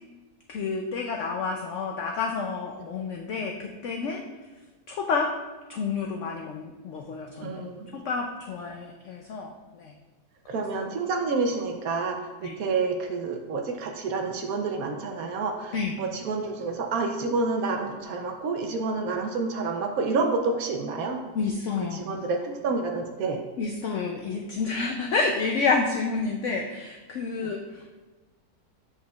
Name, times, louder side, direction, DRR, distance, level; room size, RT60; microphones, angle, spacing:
voice 1, 0.5-4.2 4.9-5.3 5.7-7.7 7.9-9.9 10.5-10.7 12.4-12.6 15.7-16.0 21.3-22.0 23.6-28.1, left 4 dB, 85° left, 2 dB, 0.6 m, -29 dB
voice 2, 7.4-8.0 10.5-21.2 22.1-23.4, right 4 dB, 70° right, 4 dB, 0.9 m, -29 dB
7.3 x 5.6 x 2.3 m, 1.2 s
omnidirectional pair, 1.8 m